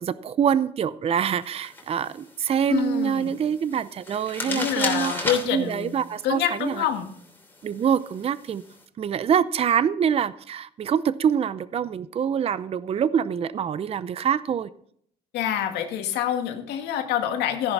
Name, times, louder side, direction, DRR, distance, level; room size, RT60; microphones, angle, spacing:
voice 1, 0.0-6.9 7.6-8.6 9.0-14.7, right 8 dB, 35° right, 16 dB, 0.6 m, -25 dB
sound 1, 1.4-8.8, left 2 dB, 10° left, 3.0 m, -36 dB
voice 2, 2.7-3.4 4.5-6.0 6.2-7.1 15.3-17.7, left 10 dB, 80° left, 5 dB, 2.1 m, -26 dB
14.0 x 10.5 x 4.1 m, 0.63 s
cardioid pair, 110°, 17 cm